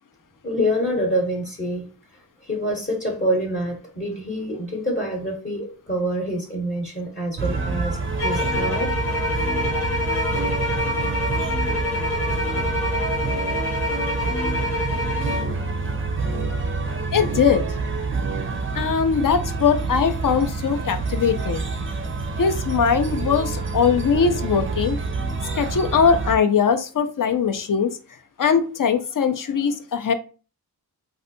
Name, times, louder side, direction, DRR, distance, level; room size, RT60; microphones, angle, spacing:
voice 1, 0.4-1.8 2.4-8.0 8.2-8.9, equal, 30° left, -2 dB, 0.9 m, -26 dB
sound 1, 7.4-26.4, right 3 dB, 30° right, 0.5 m, -27 dB
sound 2, 8.2-15.5, left 2 dB, 70° left, 1.1 m, -26 dB
voice 2, 17.1-17.6 18.7-21.6 22.4-25.0 25.6-28.0 28.4-30.1, left 6 dB, 55° left, 8 dB, 0.5 m, -21 dB
3.2 x 2.6 x 2.6 m, 0.35 s
wide cardioid pair, 75°, 39 cm